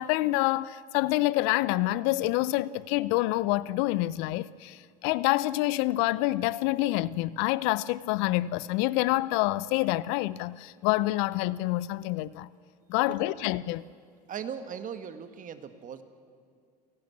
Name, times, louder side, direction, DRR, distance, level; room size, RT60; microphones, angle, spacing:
voice 1, 0.0-12.5 12.9-13.9, left 18 dB, 60° left, 0.6 m, -27 dB
voice 2, 12.9-13.4 14.3-16.0, right 7 dB, 40° right, 1.7 m, -39 dB
29.5 x 12.0 x 8.5 m
hypercardioid pair, 85°, 21 cm